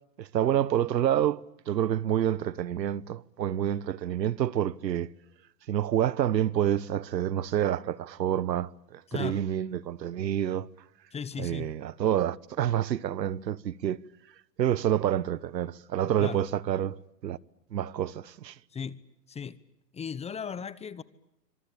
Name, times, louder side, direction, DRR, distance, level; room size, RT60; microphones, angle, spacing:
voice 1, 0.2-5.1 5.7-10.7 11.4-14.0 14.6-17.0 17.2-17.4 17.7-18.5, right 11 dB, 85° right, 1.2 m, -28 dB
voice 2, 9.1-9.4 11.1-11.7 16.2-16.4 18.7-19.0 19.3-19.6 19.9-21.0, left 6 dB, 15° left, 1.0 m, -36 dB
27.5 x 26.0 x 8.5 m
hypercardioid pair, 120°, 49 cm